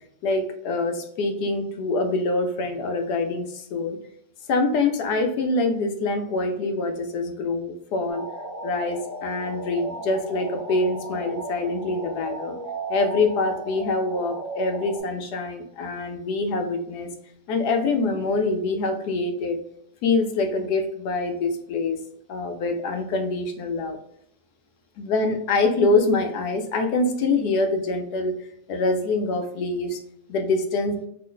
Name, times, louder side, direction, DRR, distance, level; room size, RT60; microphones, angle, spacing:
voice 1, 0.2-4.0 4.5-8.2 8.6-12.6 12.9-17.1 17.5-19.6 20.0-22.0 22.3-24.0 25.0-28.3 28.7-30.0 30.3-31.0, left 3 dB, 70° left, 5 dB, 1.0 m, -25 dB
sound 1, 8.1-15.0, right 2 dB, 15° left, 0.8 m, -35 dB
3.2 x 2.0 x 3.7 m, 0.74 s
omnidirectional pair, 1.9 m